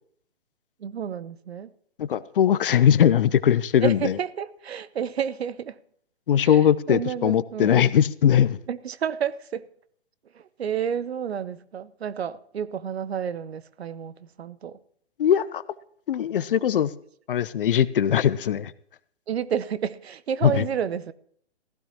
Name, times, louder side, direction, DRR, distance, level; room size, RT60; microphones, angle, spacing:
voice 1, 0.8-1.7 3.8-5.8 6.4-6.6 6.9-7.9 8.7-9.7 10.3-14.8 19.3-21.1, right 8 dB, 65° right, 0.9 m, -30 dB
voice 2, 2.0-4.1 6.3-8.6 15.2-15.6 16.1-16.9 17.3-18.7 20.4-20.7, left 9 dB, 50° left, 0.7 m, -20 dB
16.0 x 15.0 x 3.0 m
figure-of-eight pair, 135°, 34 cm